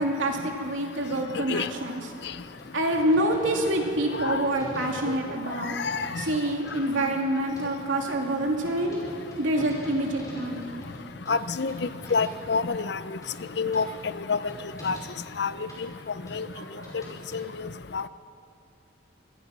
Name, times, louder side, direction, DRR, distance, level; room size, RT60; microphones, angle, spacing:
voice 1, 0.0-2.0 2.7-5.8 6.2-9.0 9.4-10.6 16.5-16.9, right 1 dB, 85° right, 1 dB, 3.0 m, -27 dB
sound 1, 2.4-17.4, equal, 20° left, 5.3 m, -45 dB
voice 2, 5.6-6.2 11.3-13.0 13.6-13.9 14.3-14.5 14.8-15.0 15.4-15.5 15.8-15.9 16.3-16.5 16.9-17.0 17.3-18.0, left 5 dB, 60° left, 14 dB, 0.6 m, -28 dB
24.5 x 18.5 x 6.1 m, 2.7 s
head